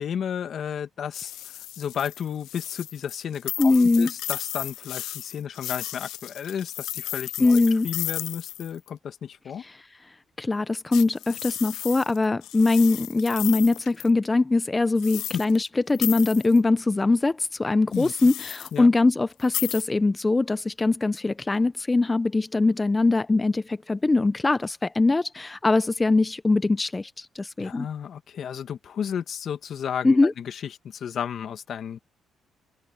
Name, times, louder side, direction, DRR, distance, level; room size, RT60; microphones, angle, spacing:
voice 1, 0.0-1.3 1.8-9.6 15.3-15.4 17.9-18.1 18.7-18.9 27.6-32.0, left 8 dB, 60° left, 2.1 m, -33 dB
sound 1, 1.1-8.9 10.9-14.1 15.0-15.7 15.9-16.6 17.9-18.8 19.4-19.8, left 14 dB, 85° left, 0.4 m, -35 dB
voice 2, 3.6-4.1 7.4-7.9 9.6-9.8 10.4-27.9 30.0-30.3, left 3 dB, 20° left, 0.5 m, -22 dB
cardioid pair, 90°, 0 cm